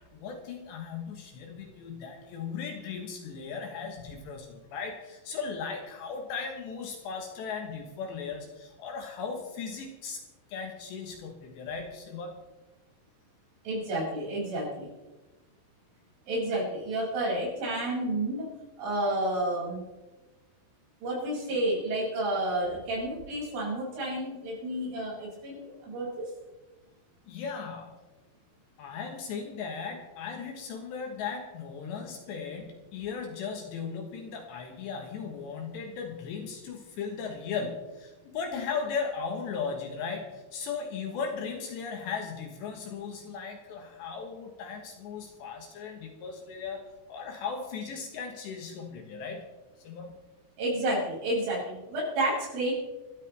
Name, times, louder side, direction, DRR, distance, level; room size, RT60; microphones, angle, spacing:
voice 1, 0.1-10.2 10.5-12.4 27.3-28.0 28.8-49.5 49.8-50.2, left 5 dB, 70° left, 3 dB, 3.2 m, -37 dB
voice 2, 13.7-14.9 16.3-18.5 18.8-19.8 21.0-26.3 50.6-52.7, right 1 dB, 65° right, -5 dB, 8.9 m, -30 dB
28.0 x 12.5 x 3.4 m, 1.1 s
omnidirectional pair, 5.9 m